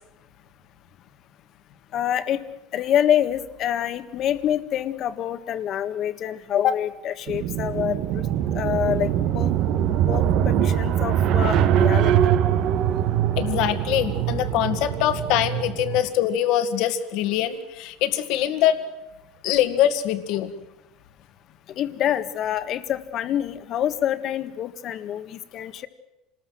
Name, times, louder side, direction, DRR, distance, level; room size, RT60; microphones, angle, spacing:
voice 1, 1.9-2.4 2.7-8.0 8.5-9.5 10.1-12.3 21.7-25.9, left 10 dB, 45° left, 11 dB, 1.6 m, -26 dB
sound 1, 7.3-16.1, right 10 dB, 60° right, 1.4 m, -22 dB
voice 2, 13.4-18.8 19.4-20.5, left 11 dB, 65° left, 9 dB, 2.1 m, -23 dB
27.0 x 20.0 x 7.7 m, 0.95 s
supercardioid pair, 120°, 0 cm